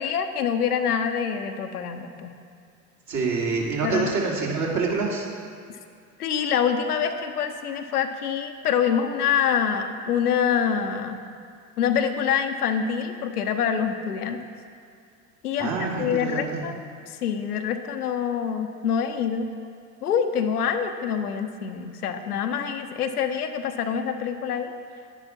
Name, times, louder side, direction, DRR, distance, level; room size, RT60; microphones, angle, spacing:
voice 1, 0.0-2.3 3.8-4.1 6.2-11.2 11.8-14.4 15.4-16.8 17.2-19.5 20.0-24.7, left 7 dB, 75° left, 7 dB, 0.9 m, -26 dB
voice 2, 3.1-5.3 15.6-16.6, right 4 dB, 40° right, -3 dB, 2.8 m, -26 dB
11.0 x 10.5 x 4.4 m, 2.4 s
figure-of-eight pair, 75°, 46 cm